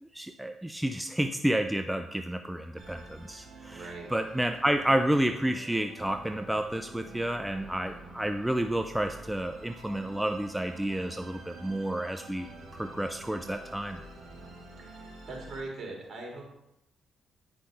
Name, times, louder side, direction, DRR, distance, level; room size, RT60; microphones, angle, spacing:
voice 1, 0.0-12.5 12.7-14.0, right 1 dB, 5° right, 7 dB, 0.5 m, -30 dB
Musical instrument, 2.8-15.6, right 2 dB, 70° right, 2.8 m, -48 dB
voice 2, 3.7-4.1 14.8-16.5, right 2 dB, 45° right, -2 dB, 3.7 m, -41 dB
10.0 x 6.0 x 3.8 m, 0.84 s
supercardioid pair, 70°, 0 cm